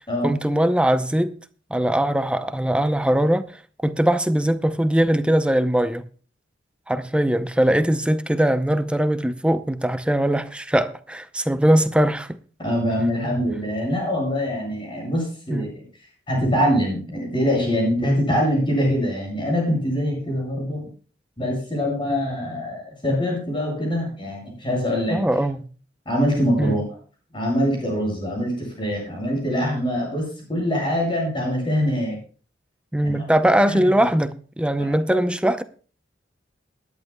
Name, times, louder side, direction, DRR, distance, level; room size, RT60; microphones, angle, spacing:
voice 1, 0.2-1.4 1.7-6.1 6.9-12.4 15.5-15.7 25.1-25.7 26.6-26.8 32.9-35.6, right 1 dB, 5° right, 0.6 m, -21 dB
voice 2, 12.6-15.8 16.3-20.9 21.4-25.2 26.1-26.8 27.3-32.2 33.0-33.2 33.5-33.9 34.8-34.9 35.1-35.2, equal, 30° left, 7.9 m, -24 dB
21.0 x 11.0 x 2.3 m
head